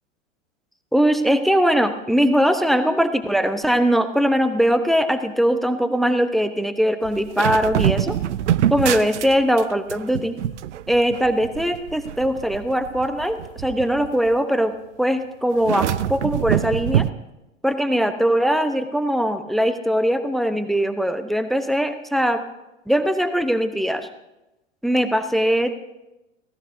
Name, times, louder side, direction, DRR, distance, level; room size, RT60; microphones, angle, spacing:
voice 1, 0.9-8.1 8.7-10.3 10.9-17.0 17.6-22.4 22.9-24.1 24.8-25.8, equal, ahead, 10 dB, 0.8 m, -21 dB
sound 1, 7.0-9.6 9.9-14.3 15.6-17.1, right 11 dB, 65° right, 0.6 m, -25 dB
29.5 x 17.0 x 2.7 m, 0.94 s
figure-of-eight pair, 100°, 39 cm